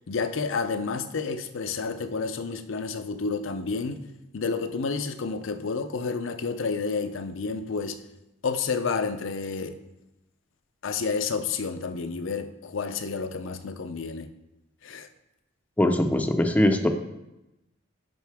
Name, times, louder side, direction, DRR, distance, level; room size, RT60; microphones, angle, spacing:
voice 1, 0.1-4.1 4.3-8.0 8.4-9.8 10.8-14.3 14.8-15.1, left 4 dB, 70° left, 9 dB, 0.6 m, -30 dB
voice 2, 15.8-16.9, left 1 dB, 5° left, 5 dB, 0.6 m, -21 dB
9.1 x 5.6 x 3.5 m, 0.93 s
head